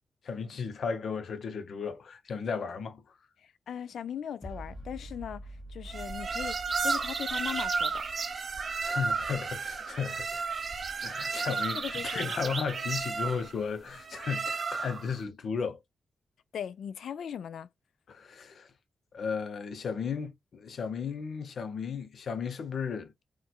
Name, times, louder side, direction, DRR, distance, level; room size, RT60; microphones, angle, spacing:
voice 1, 0.2-3.1 8.8-10.4 11.0-15.8 18.1-18.7 19.1-23.2, left 6 dB, 65° left, 0.7 m, -35 dB
voice 2, 3.7-8.0 11.8-12.3 16.5-17.7, left 9 dB, 80° left, 0.3 m, -39 dB
sound 1, 4.4-7.9, right 1 dB, 25° left, 0.9 m, -46 dB
sound 2, 5.9-15.1, right 4 dB, 45° right, 0.5 m, -33 dB
4.2 x 2.4 x 2.3 m
wide cardioid pair, 125°, 0 cm